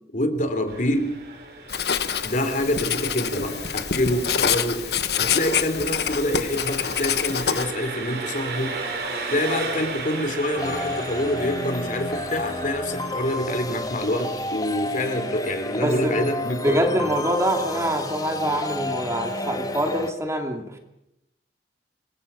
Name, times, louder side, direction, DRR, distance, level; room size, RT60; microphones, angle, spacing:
voice 1, 0.1-1.1 2.2-8.7 9.3-16.9, left 1 dB, 45° left, 8 dB, 3.3 m, -26 dB
Engine, 0.7-14.7, right 3 dB, 60° right, 4.1 m, -36 dB
Writing, 1.7-7.7, left 8 dB, 65° left, 1.2 m, -26 dB
sound 1, 10.6-20.1, left 1 dB, 20° left, 1.5 m, -31 dB
voice 2, 15.8-20.8, right 1 dB, 15° right, 4 dB, 2.7 m, -25 dB
27.0 x 23.5 x 5.7 m, 0.85 s
head